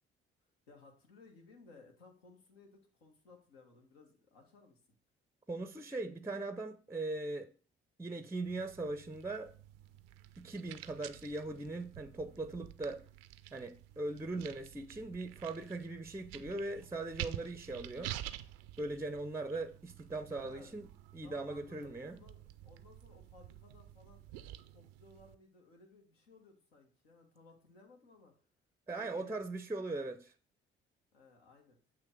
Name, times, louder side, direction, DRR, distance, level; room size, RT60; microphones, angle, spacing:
voice 1, 0.7-4.8 20.3-20.7 21.2-28.3 28.9-29.4 31.1-31.8, left 3 dB, 80° left, 1.2 m, -60 dB
voice 2, 5.5-7.5 8.0-9.5 10.4-13.0 13.5-18.1 18.8-20.9 21.1-22.2 28.9-30.3, right 2 dB, 10° right, 0.5 m, -40 dB
sound 1, 8.4-25.4, right 14 dB, 75° right, 0.5 m, -49 dB
7.4 x 3.0 x 6.1 m
figure-of-eight pair, 45°, 30 cm